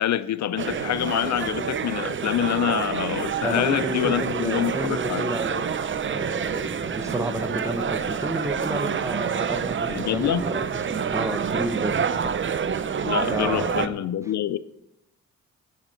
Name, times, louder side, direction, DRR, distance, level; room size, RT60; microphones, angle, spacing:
voice 1, 0.0-5.3 9.9-10.4 13.0-14.6, left 11 dB, 70° left, 0.5 m, -26 dB
sound 1, 0.6-13.9, right 7 dB, 40° right, 0.6 m, -28 dB
voice 2, 3.4-5.7 6.1-10.6 10.9-12.4 13.3-13.9, right 1 dB, 10° right, 1.1 m, -31 dB
10.0 x 9.3 x 4.4 m
cardioid pair, 80°, 30 cm